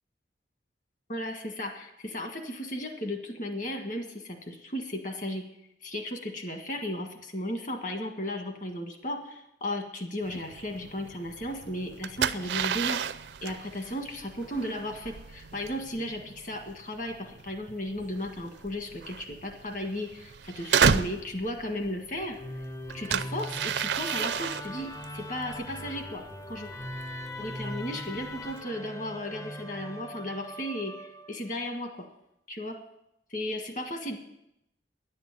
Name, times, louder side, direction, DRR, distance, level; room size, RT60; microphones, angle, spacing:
voice 1, 1.1-5.4 5.8-13.0 13.4-26.7 27.4-32.1 32.5-32.7 33.3-34.2, left 1 dB, 45° left, 4 dB, 1.6 m, -35 dB
sound 1, 10.2-28.6, right 7 dB, 75° right, 0.5 m, -33 dB
Musical instrument, 22.3-31.6, equal, 15° left, 0.5 m, -40 dB
10.5 x 7.6 x 9.5 m, 0.82 s
head